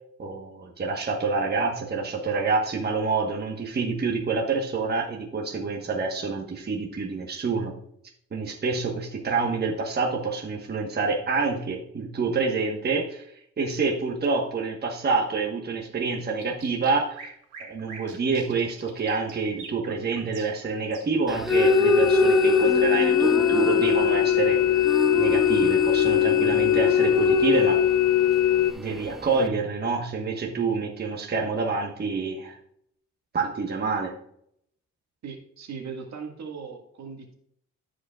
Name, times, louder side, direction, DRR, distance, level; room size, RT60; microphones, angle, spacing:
voice 1, 0.2-7.7 8.3-13.2 13.6-17.3 17.7-24.6 25.1-27.8 28.8-32.6 33.3-34.1, right 4 dB, 35° right, 1 dB, 1.3 m, -27 dB
sound 1, 16.4-21.3, right 4 dB, 85° right, 2.5 m, -44 dB
sound 2, 21.3-29.5, right 1 dB, ahead, 0.5 m, -27 dB
sound 3, 21.5-28.7, left 12 dB, 90° left, 0.5 m, -21 dB
voice 2, 35.2-37.3, right 5 dB, 65° right, 2 dB, 1.9 m, -38 dB
14.5 x 5.1 x 2.4 m, 0.70 s
cardioid pair, 90°, 30 cm